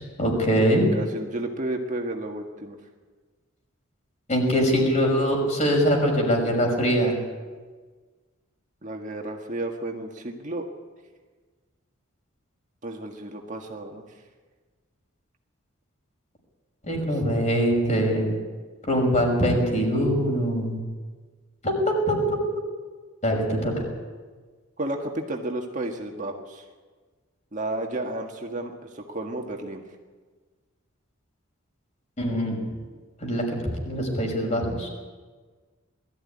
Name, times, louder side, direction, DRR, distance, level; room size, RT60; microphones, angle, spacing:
voice 1, 0.0-0.9 4.3-7.1 16.9-18.3 18.8-20.8 21.6-22.4 23.2-23.7 32.2-32.6 33.2-33.6 33.8-34.9, equal, 35° left, 0 dB, 5.9 m, -23 dB
voice 2, 0.9-2.8 8.8-10.7 12.8-14.1 17.0-17.3 24.8-26.6 27.5-29.8, right 1 dB, 40° right, 2 dB, 1.8 m, -32 dB
21.0 x 14.0 x 9.9 m, 1.4 s
head